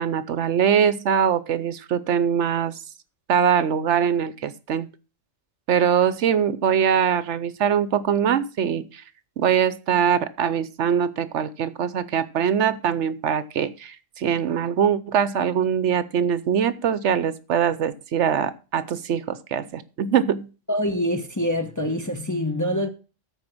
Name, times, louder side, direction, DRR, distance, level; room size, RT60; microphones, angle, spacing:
voice 1, 0.0-2.8 3.3-4.9 5.7-9.0 9.4-20.5, right 8 dB, 70° right, 1.0 m, -22 dB
voice 2, 20.7-22.9, equal, 15° left, 0.8 m, -25 dB
14.0 x 4.9 x 6.0 m
omnidirectional pair, 1.3 m